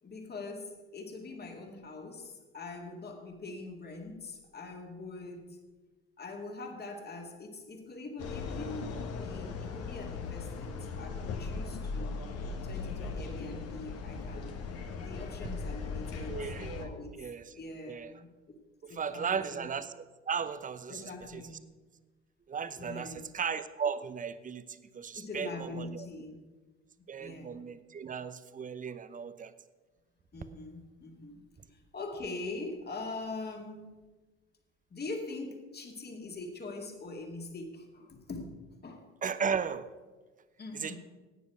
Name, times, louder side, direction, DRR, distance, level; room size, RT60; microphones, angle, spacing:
voice 1, 0.0-5.6 6.2-12.2 12.6-14.6 15.0-16.4 16.8-18.6 18.9-19.7 20.9-21.7 22.8-23.3 25.2-26.4 27.2-27.6 30.3-34.0 34.9-39.1 40.6-41.0, left 3 dB, 30° left, 3 dB, 2.3 m, -43 dB
sound 1, 8.2-16.9, left 4 dB, 45° left, 1.4 m, -38 dB
voice 2, 16.3-17.5 17.9-18.1 18.8-21.4 22.5-26.1 27.1-29.5 39.2-39.9 40.7-41.0, right 6 dB, 25° right, 13 dB, 0.8 m, -36 dB
15.0 x 9.4 x 4.9 m, 1.3 s
figure-of-eight pair, 60°, 34 cm